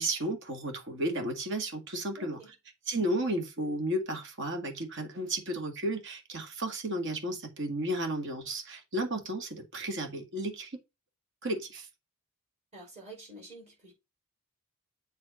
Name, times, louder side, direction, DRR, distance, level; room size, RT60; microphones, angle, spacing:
voice 1, 0.0-2.4 2.9-10.8 11.4-11.9, right 1 dB, 55° right, 2.0 m, -33 dB
voice 2, 2.2-2.5 12.7-13.9, right 1 dB, 30° right, 5.3 m, -48 dB
7.7 x 3.5 x 5.0 m
head